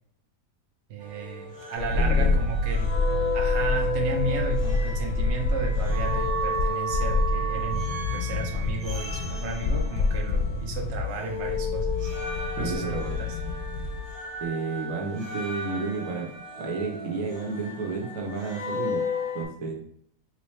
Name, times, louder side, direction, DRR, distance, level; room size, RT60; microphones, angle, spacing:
voice 1, 0.9-3.0 3.3-7.8 8.1-12.1 12.6-13.4, right 4 dB, 60° right, 1 dB, 0.9 m, -34 dB
sound 1, 1.0-10.8 11.1-19.4, left 2 dB, 30° right, 0.5 m, -33 dB
sound 2, 1.8-14.2 14.4-14.5, left 3 dB, 80° left, 1.1 m, -27 dB
voice 2, 1.9-2.4 12.6-13.2 14.4-16.3 16.6-19.0 19.3-19.8, right 4 dB, 80° right, 0 dB, 1.2 m, -31 dB
3.2 x 3.1 x 3.1 m, 0.69 s
omnidirectional pair, 1.5 m